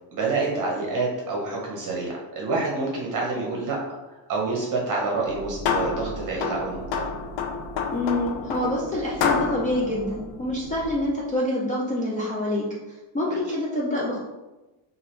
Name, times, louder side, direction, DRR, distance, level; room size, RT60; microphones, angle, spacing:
voice 1, 0.1-3.8 4.3-7.1 13.3-13.4, right 3 dB, 40° right, -2 dB, 0.9 m, -27 dB
sound 1, 5.2-11.1, left 5 dB, 65° left, 0.6 m, -29 dB
voice 2, 7.9-12.7 13.1-14.2, left 1 dB, 20° left, -5 dB, 0.3 m, -26 dB
4.6 x 2.6 x 3.1 m, 1.1 s
cardioid pair, 160°, 47 cm